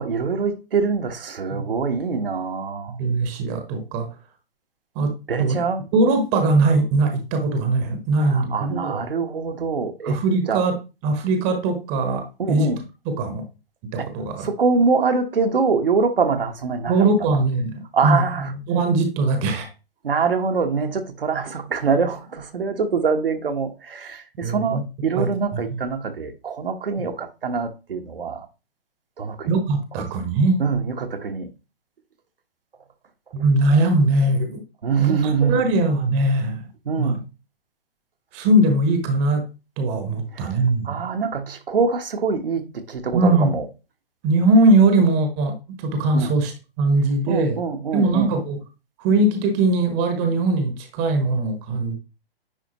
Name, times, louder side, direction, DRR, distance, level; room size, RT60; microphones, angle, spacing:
voice 1, 0.0-2.9 5.3-5.8 8.2-10.2 10.5-10.6 12.4-12.8 14.0-14.1 14.4-16.9 17.9-18.5 20.0-28.5 29.2-29.5 30.6-31.5 34.8-35.6 36.9-37.2 40.3-40.5 40.8-42.6 42.9-43.6 46.1-46.3 47.3-48.3, right 5 dB, 65° right, 1.2 m, -24 dB
voice 2, 2.9-4.1 4.9-5.6 5.9-9.0 10.0-12.7 13.0-13.5 13.9-14.5 16.9-19.7 24.4-24.8 25.1-25.8 29.5-30.6 33.3-34.6 35.0-36.6 37.0-37.1 38.3-39.5 39.8-41.0 43.1-43.5 44.2-47.6 47.9-48.6 49.0-52.0, right 2 dB, 20° right, 1.1 m, -21 dB
9.9 x 4.4 x 2.9 m
figure-of-eight pair, 125°, 30 cm